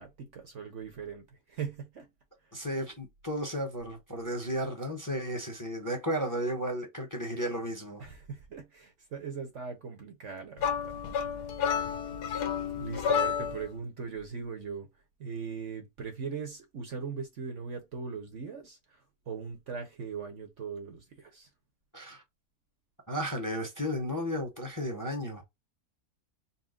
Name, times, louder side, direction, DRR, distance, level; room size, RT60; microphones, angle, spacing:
voice 1, 0.0-2.1 8.0-11.0 12.7-14.9 15.2-21.5, right 6 dB, 55° right, 1.1 m, -40 dB
voice 2, 2.5-8.0 21.9-22.2 23.1-25.4, equal, 15° left, 1.0 m, -34 dB
sound 1, 10.6-13.7, left 7 dB, 85° left, 1.3 m, -30 dB
4.2 x 2.2 x 3.7 m
omnidirectional pair, 1.7 m